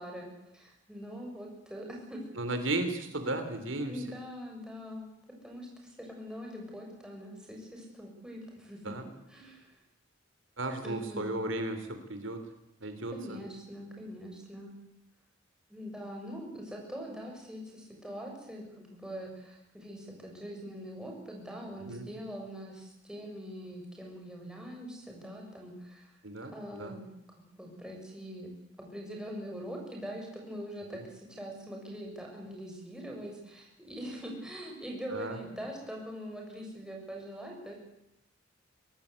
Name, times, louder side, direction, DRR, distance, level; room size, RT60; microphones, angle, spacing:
voice 1, 0.0-2.2 3.8-5.1 5.4-9.7 10.8-11.3 13.1-14.7 15.7-26.1 26.5-28.5 28.9-37.7, equal, 5° right, -1 dB, 7.0 m, -43 dB
voice 2, 2.4-4.0 8.8-9.1 10.6-12.4 12.8-13.4 21.9-22.1 26.2-26.9 30.9-31.0 35.1-35.4, right 2 dB, 75° right, 7 dB, 3.2 m, -35 dB
24.0 x 17.5 x 8.3 m, 0.85 s
head